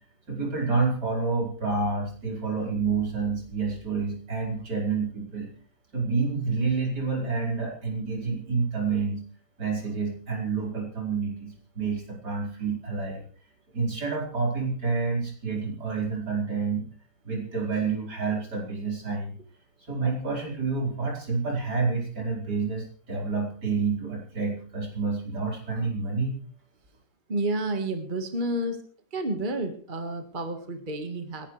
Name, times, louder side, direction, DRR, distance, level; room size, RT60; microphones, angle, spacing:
voice 1, 0.3-5.5 5.9-9.2 9.6-13.2 13.7-16.8 17.2-19.4 19.9-26.4, right 4 dB, 85° right, -1 dB, 5.5 m, -28 dB
voice 2, 27.3-28.8 29.1-31.5, right 1 dB, 30° right, 5 dB, 1.8 m, -30 dB
29.5 x 11.0 x 3.3 m, 0.43 s
omnidirectional pair, 1.7 m